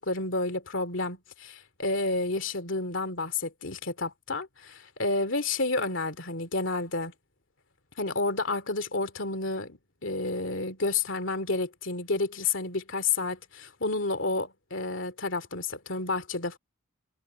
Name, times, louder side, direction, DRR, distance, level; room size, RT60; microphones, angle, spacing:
voice 1, 0.0-7.1 8.0-16.6, left 3 dB, 60° left, 2.8 m, -30 dB
head